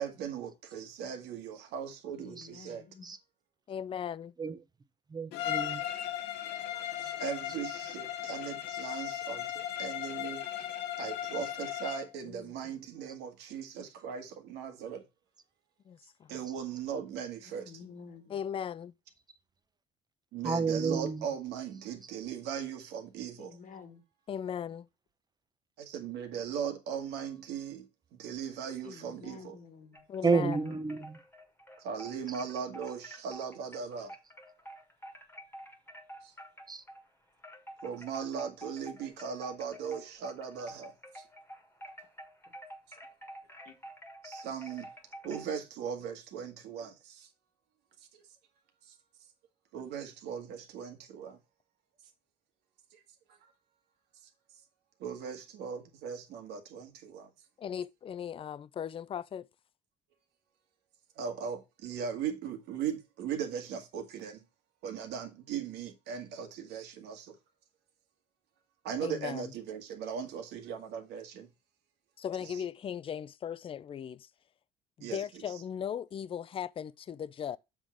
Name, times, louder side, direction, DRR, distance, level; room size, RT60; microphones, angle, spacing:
voice 1, 0.0-2.8 6.7-10.7 11.0-15.0 16.3-17.7 20.3-23.6 25.8-27.9 28.1-29.6 31.8-34.1 36.2-36.3 37.8-41.2 44.2-44.9 45.2-47.3 48.1-48.2 49.7-51.4 55.0-57.3 61.2-64.4 64.8-67.4 68.8-71.5 75.0-75.2, right 7 dB, 85° right, 1.8 m, -38 dB
voice 2, 2.2-3.1 12.2-12.8 17.4-18.3 23.4-24.0 28.8-30.0 43.6-43.8, left 6 dB, 50° left, 1.4 m, -51 dB
voice 3, 3.7-4.3 15.9-16.4 18.3-18.9 24.3-24.8 30.1-30.6 57.6-59.5 69.0-69.5 72.2-74.3 75.0-77.6, left 8 dB, 35° left, 0.4 m, -37 dB
voice 4, 5.1-6.1 7.0-7.1 7.5-7.6 13.1-13.2 16.4-16.5 20.4-21.4 30.2-31.2 32.3-32.4 36.7-36.8, right 4 dB, 25° right, 0.7 m, -31 dB
Bowed string instrument, 5.3-12.1, left 12 dB, 85° left, 0.9 m, -37 dB
sound 1, 29.9-37.1 37.4-45.5, equal, 10° left, 1.6 m, -49 dB
7.2 x 3.8 x 6.1 m
cardioid pair, 110°, 17 cm